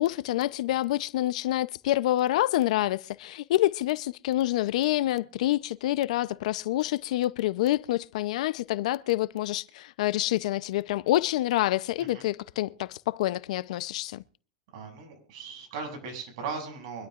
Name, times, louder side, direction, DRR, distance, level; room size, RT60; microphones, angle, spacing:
voice 1, 0.0-14.2, left 15 dB, 75° left, 0.6 m, -27 dB
voice 2, 14.7-17.1, right 5 dB, 65° right, 7.4 m, -38 dB
24.5 x 12.5 x 2.5 m
supercardioid pair, 140°, 4 cm